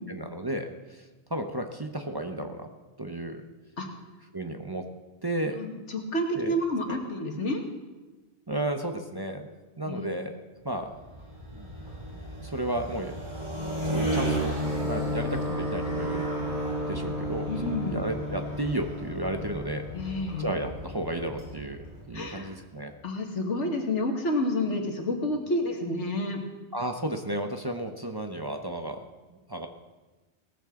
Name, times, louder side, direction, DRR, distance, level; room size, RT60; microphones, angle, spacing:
voice 1, 0.1-2.7 3.0-3.5 4.3-4.9 5.2-5.6 6.3-6.6 6.9-7.0 8.5-10.4 10.6-10.9 11.5-11.7 12.4-13.2 13.9-16.3 16.9-19.8 20.4-22.9 26.7-29.7, right 1 dB, 25° right, 4 dB, 0.8 m, -33 dB
voice 2, 5.6-7.6 9.9-10.1 17.5-18.0 19.9-20.5 22.1-22.5 23.0-26.4, left 1 dB, 90° left, 3 dB, 2.0 m, -29 dB
sound 1, 10.8-22.4, equal, 45° right, 6.4 m, -33 dB
17.5 x 14.5 x 3.8 m, 1.2 s
omnidirectional pair, 1.2 m